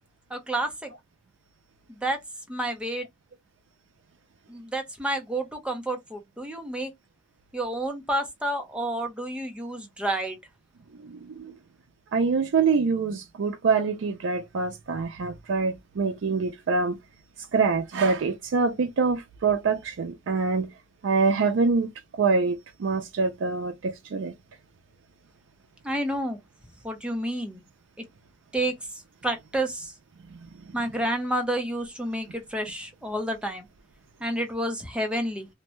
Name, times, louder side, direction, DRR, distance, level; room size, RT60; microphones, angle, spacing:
voice 1, 0.3-0.9 1.9-2.2 2.5-3.1 4.5-6.9 7.5-10.4 25.8-26.4 26.8-27.6 28.5-29.9 30.7-33.7 34.2-35.5, right 1 dB, 5° right, 0.6 m, -30 dB
voice 2, 11.0-11.5 12.1-17.0 17.5-20.7 21.0-21.9 22.2-24.3, right 4 dB, 80° right, 0.4 m, -25 dB
2.6 x 2.2 x 3.0 m
head